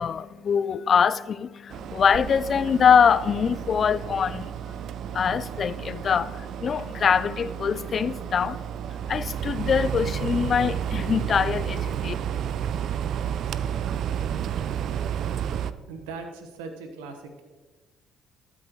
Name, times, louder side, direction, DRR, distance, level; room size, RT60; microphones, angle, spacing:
voice 1, 0.0-4.5 5.1-8.6 9.1-12.1, left 7 dB, 50° left, 0.4 m, -23 dB
sound 1, 1.7-15.7, right 9 dB, 65° right, 0.4 m, -31 dB
voice 2, 15.9-17.4, right 4 dB, 85° right, 1.1 m, -39 dB
12.0 x 8.3 x 3.1 m
supercardioid pair, 65°, 0 cm